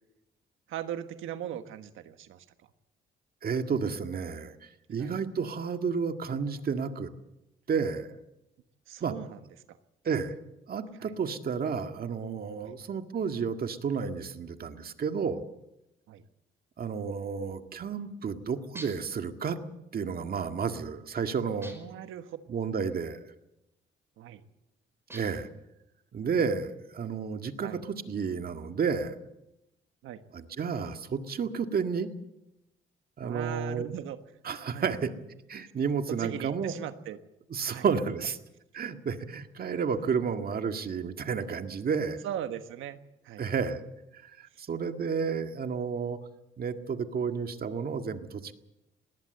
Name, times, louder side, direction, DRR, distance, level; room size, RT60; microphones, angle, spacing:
voice 1, 0.7-2.4 5.0-5.1 8.9-9.4 9.7-9.8 11.0-11.1 12.6-12.7 16.1-16.2 21.7-22.4 24.2-24.4 27.6-27.8 30.0-30.2 33.2-34.2 34.7-34.9 36.1-37.2 37.7-37.8 40.0-40.3 42.2-43.0 43.2-43.4, right 10 dB, 85° right, 10 dB, 1.4 m, -39 dB
voice 2, 3.4-7.1 7.7-8.1 9.0-9.1 10.0-10.3 10.7-15.4 16.8-19.6 19.9-21.8 22.5-23.2 25.1-25.5 26.1-29.2 30.3-32.1 33.2-33.9 34.4-35.1 35.5-36.7 37.5-38.4 38.7-42.2 43.4-43.8 44.2-46.2 46.6-48.5, right 6 dB, 50° right, 7 dB, 1.9 m, -31 dB
sound 1, 18.8-19.2 21.6-22.1 25.1-25.6, right 1 dB, 10° right, 5.4 m, -46 dB
20.5 x 17.5 x 7.9 m, 0.91 s
cardioid pair, 90°, 20 cm